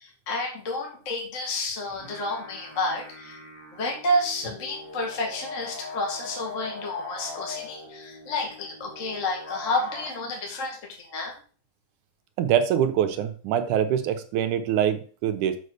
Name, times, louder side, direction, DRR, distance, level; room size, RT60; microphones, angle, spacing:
voice 1, 0.0-3.4 3.7-11.4, left 1 dB, 30° left, 1 dB, 1.7 m, -30 dB
sound 1, 1.8-10.1, left 2 dB, 10° left, 1.5 m, -41 dB
voice 2, 12.4-15.6, right 9 dB, 80° right, 9 dB, 2.3 m, -24 dB
6.7 x 4.9 x 6.6 m, 0.40 s
omnidirectional pair, 3.6 m